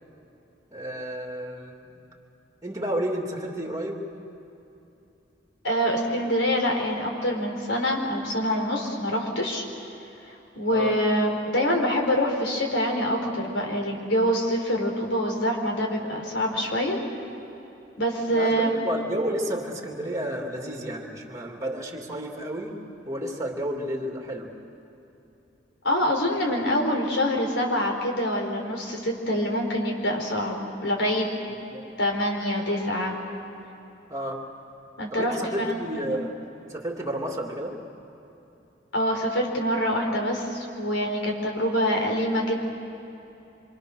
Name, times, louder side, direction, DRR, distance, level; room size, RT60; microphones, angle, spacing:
voice 1, 0.7-2.0 2.6-4.1 10.6-11.0 18.3-22.8 23.1-24.5 31.7-31.9 34.1-34.5 35.1-36.4 36.7-37.8, right 1 dB, 20° right, 1 dB, 2.7 m, -31 dB
voice 2, 5.6-9.6 10.3-17.0 18.0-18.8 25.8-31.3 32.0-33.1 35.0-36.0 38.9-42.6, equal, 90° left, 1 dB, 4.3 m, -25 dB
26.0 x 25.5 x 6.5 m, 2.9 s
head